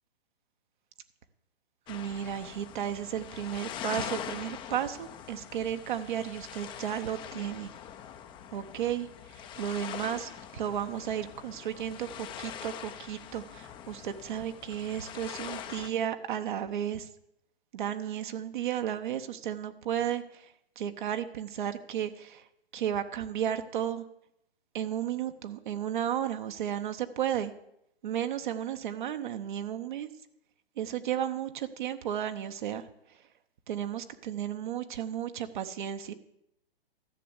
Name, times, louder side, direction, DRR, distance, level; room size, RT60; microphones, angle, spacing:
sound 1, 1.9-15.9, left 9 dB, 15° left, 0.6 m, -43 dB
voice 1, 1.9-7.7 8.5-9.1 9.6-17.1 17.7-20.5 20.8-22.4 22.7-24.0 24.7-27.5 28.0-30.1 30.8-32.8 33.7-36.1, right 10 dB, 55° right, 7 dB, 1.0 m, -33 dB
13.5 x 6.8 x 8.2 m, 0.78 s
hypercardioid pair, 125°, 30 cm